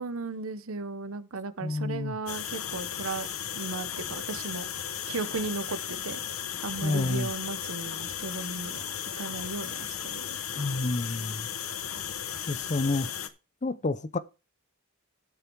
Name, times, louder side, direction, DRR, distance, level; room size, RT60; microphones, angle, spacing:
voice 1, 0.0-3.3 3.5-4.7 5.1-6.2 6.6-10.7, right 3 dB, 70° right, 0.9 m, -36 dB
voice 2, 1.6-2.2 6.8-7.3 10.6-11.5 12.5-13.1 13.6-14.2, left 2 dB, 35° left, 0.6 m, -29 dB
sound 1, 2.3-13.3, left 9 dB, 75° left, 1.0 m, -35 dB
12.0 x 5.9 x 4.6 m
head